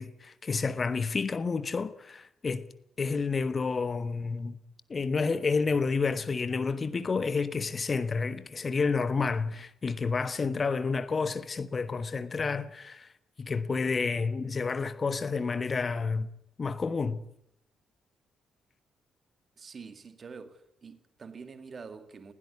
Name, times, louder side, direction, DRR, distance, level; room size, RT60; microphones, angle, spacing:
voice 1, 0.0-2.7 3.0-4.6 4.9-13.1 13.4-16.3 16.6-17.2, left 4 dB, 40° left, 1.2 m, -30 dB
voice 2, 19.6-22.3, right 5 dB, 45° right, 2.2 m, -46 dB
20.0 x 16.0 x 8.4 m
figure-of-eight pair, 40°, 0 cm